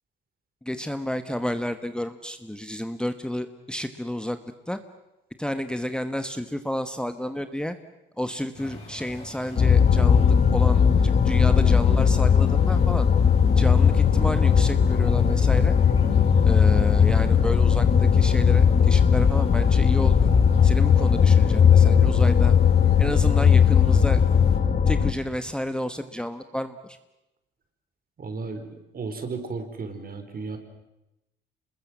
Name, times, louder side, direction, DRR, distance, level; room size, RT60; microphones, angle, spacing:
voice 1, 0.6-4.4 4.7-4.8 5.4-7.8 8.2-13.1 13.6-15.7 16.4-20.3 20.6-22.5 23.0-24.2 24.9-27.0, left 1 dB, 5° left, 9 dB, 1.2 m, -31 dB
sound 1, 8.5-24.6, left 2 dB, 30° left, 6.8 m, -43 dB
sound 2, 9.6-25.1, left 7 dB, 45° left, 1.4 m, -18 dB
voice 2, 28.2-30.6, right 4 dB, 45° right, 7 dB, 4.2 m, -34 dB
26.0 x 21.0 x 7.5 m, 0.94 s
cardioid pair, 90°, 20 cm